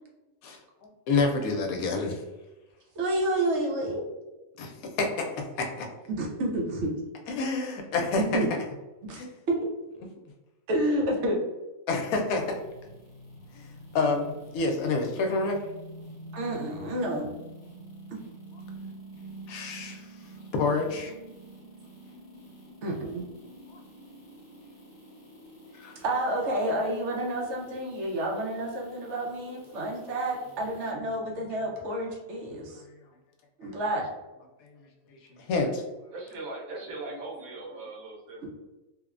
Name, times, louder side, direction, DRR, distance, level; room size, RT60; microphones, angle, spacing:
voice 1, 1.1-2.2 4.6-5.9 7.3-8.4 9.1-9.3 11.9-12.6 13.5-15.6 19.5-20.1 20.5-21.1 23.7-23.8 25.8-26.0 34.6-34.7 35.3-35.8, left 3 dB, 85° left, 3 dB, 1.0 m, -28 dB
voice 2, 3.0-4.0 6.1-6.9 8.2-8.5 9.0-9.2 9.5-9.6 10.7-11.4 16.3-17.3 18.1-18.2 22.8-23.2 26.0-32.7 33.6-34.0, right 1 dB, 65° right, -1 dB, 0.9 m, -29 dB
sound 1, 12.3-30.9, right 1 dB, 35° left, 0.7 m, -47 dB
voice 3, 36.1-38.4, right 2 dB, 85° right, -1 dB, 1.2 m, -39 dB
3.0 x 2.1 x 2.3 m, 1.1 s
omnidirectional pair, 1.4 m